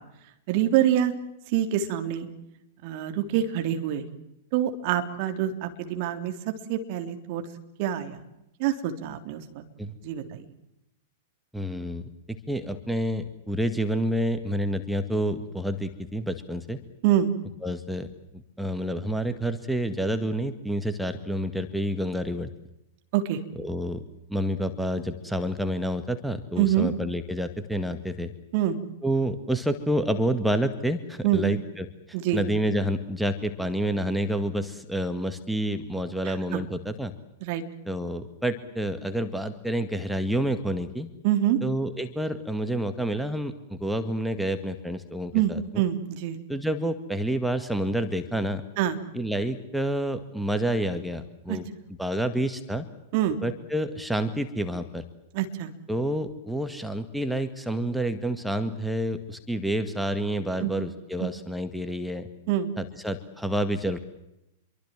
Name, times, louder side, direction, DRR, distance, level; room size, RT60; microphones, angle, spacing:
voice 1, 0.5-1.1 1.5-2.3 2.8-4.0 4.5-6.3 6.7-7.4 7.8-8.2 8.6-9.6 10.0-10.4 17.0-17.3 23.1-23.4 26.6-26.9 28.5-28.8 31.2-31.4 32.1-32.4 36.2-36.6 37.4-37.6 41.2-41.6 45.3-46.4 48.8-49.0 51.5-51.6 53.1-53.4 55.3-55.7 60.6-60.7 61.2-61.3 62.5-62.7, right 11 dB, 45° right, 6 dB, 3.4 m, -25 dB
voice 2, 11.5-16.8 17.6-18.1 18.3-22.5 23.6-24.0 24.3-28.3 29.0-31.9 32.3-37.1 37.9-41.1 41.6-45.6 46.5-48.6 49.1-51.6 52.0-52.9 53.4-55.0 55.9-62.3 62.8-64.0, right 1 dB, ahead, 8 dB, 1.9 m, -28 dB
27.5 x 23.5 x 7.7 m, 0.88 s
figure-of-eight pair, 100°, 0 cm